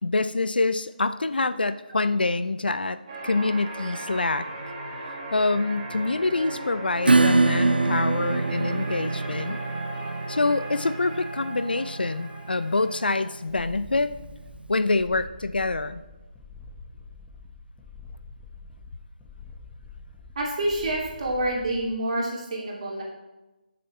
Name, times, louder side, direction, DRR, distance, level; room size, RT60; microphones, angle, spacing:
voice 1, 0.0-3.0 3.2-4.5 5.3-9.6 10.3-14.1 14.7-16.0, left 3 dB, 75° left, 13 dB, 0.5 m, -26 dB
sound 1, 3.1-13.3, right 2 dB, 25° right, 2.1 m, -38 dB
Acoustic guitar / Strum, 7.1-14.3, right 3 dB, 85° right, 0.5 m, -25 dB
sound 2, 13.5-21.9, left 4 dB, 10° left, 1.4 m, -45 dB
voice 2, 20.4-23.0, right 1 dB, 45° right, -2 dB, 2.6 m, -27 dB
14.5 x 7.0 x 3.3 m, 1.1 s
figure-of-eight pair, 155°, 5 cm